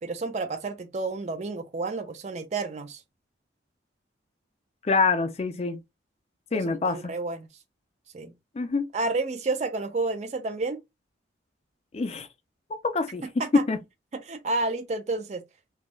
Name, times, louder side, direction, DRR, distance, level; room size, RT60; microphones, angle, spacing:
voice 1, 0.0-3.0 6.7-7.5 8.1-8.3 8.9-10.8 13.2-13.6 14.1-15.4, right 3 dB, 35° right, 0.4 m, -30 dB
voice 2, 4.8-5.8 6.5-7.1 8.5-8.9 11.9-12.3 12.9-13.2 13.5-13.8, left 4 dB, 35° left, 0.4 m, -25 dB
2.6 x 2.3 x 3.0 m
head